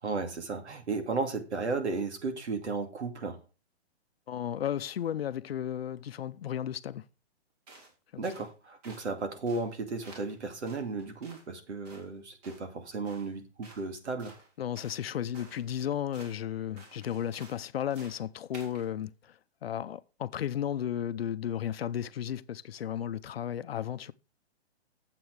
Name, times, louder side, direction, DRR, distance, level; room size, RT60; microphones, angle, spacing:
voice 1, 0.0-3.4 8.2-14.3, right 3 dB, 85° right, 2.5 m, -34 dB
voice 2, 4.3-7.0 8.1-8.3 14.6-24.1, left 10 dB, 65° left, 0.7 m, -34 dB
sound 1, 7.7-7.9 8.2-8.5 8.8-9.1 9.5-9.7 10.0-10.4 10.7-11.5 11.8-12.1 12.4-12.6 13.1-13.3 13.6-13.9 14.2-15.0 15.3-15.7 16.1-16.4 16.8-17.6 17.9-18.2 18.5-18.9, right 2 dB, 35° right, 3.5 m, -52 dB
8.9 x 7.8 x 4.7 m
hypercardioid pair, 160°, 33 cm